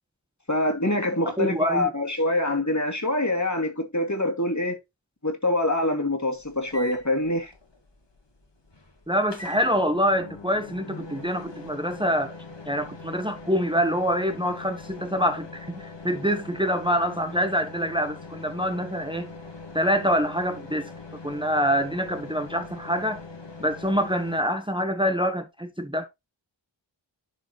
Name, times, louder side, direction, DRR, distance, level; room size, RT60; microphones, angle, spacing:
voice 1, 0.5-4.8 5.2-7.5, left 1 dB, 35° left, 2.6 m, -25 dB
voice 2, 1.4-1.9 9.1-12.3 12.7-19.3 19.7-20.9 21.2-23.2 23.6-26.1, equal, 10° right, 1.3 m, -25 dB
sound 1, 6.3-24.4, left 3 dB, 65° left, 2.5 m, -42 dB
11.5 x 5.0 x 3.2 m
wide cardioid pair, 40°, 46 cm